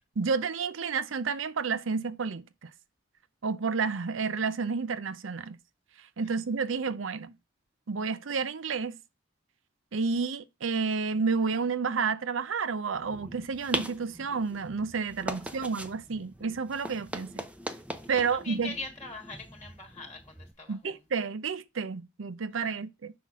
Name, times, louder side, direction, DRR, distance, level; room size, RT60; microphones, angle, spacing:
voice 1, 0.2-2.7 3.4-5.6 6.2-7.3 7.9-9.0 9.9-17.4 18.1-18.7 20.7-23.1, right 5 dB, 75° right, 0.6 m, -30 dB
sound 1, 13.0-20.5, right 1 dB, 5° right, 0.6 m, -40 dB
voice 2, 15.3-15.7 18.1-21.0 22.6-22.7, left 3 dB, 20° left, 1.5 m, -43 dB
6.0 x 5.9 x 3.6 m
head